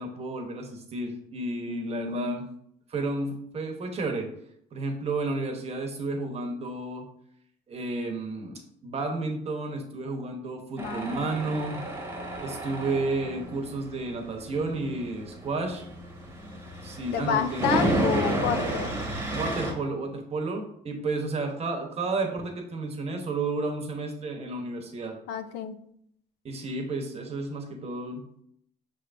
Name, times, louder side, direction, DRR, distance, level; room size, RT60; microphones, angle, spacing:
voice 1, 0.0-2.4 2.9-4.3 4.7-7.1 7.7-11.9 12.4-15.8 16.8-17.8 19.3-25.1 26.4-28.3, right 3 dB, 40° right, 3 dB, 1.0 m, -32 dB
voice 2, 1.7-2.4 10.8-11.5 17.1-19.0 25.3-25.7, left 8 dB, 90° left, 9 dB, 0.4 m, -30 dB
Tools, 10.8-19.7, right 1 dB, 15° right, 1.1 m, -32 dB
5.8 x 3.4 x 2.5 m, 0.70 s
cardioid pair, 110°, 17 cm